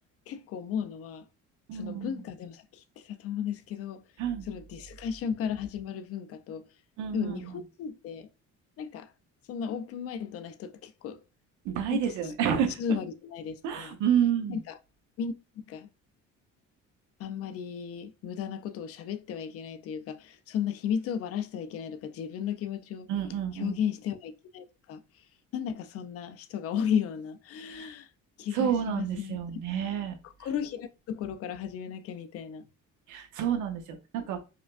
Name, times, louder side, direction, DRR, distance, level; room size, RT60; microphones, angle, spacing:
voice 1, 0.3-1.2 1.7-4.0 4.4-6.6 7.1-8.3 8.8-9.1 9.5-11.2 11.9-12.3 12.8-14.0 14.5-14.8 15.2-15.3 15.7-15.9 17.2-23.1 23.5-25.2 25.5-28.1 28.4-29.4 30.4-32.6, left 8 dB, 50° left, 0.5 m, -34 dB
voice 2, 1.7-2.1 4.2-4.4 7.0-7.5 11.6-12.8 13.6-14.6 23.1-23.8 27.7-27.9 28.5-30.2 33.1-34.4, right 8 dB, 75° right, 0.8 m, -29 dB
4.9 x 2.2 x 2.4 m
cardioid pair, 155°, 30 cm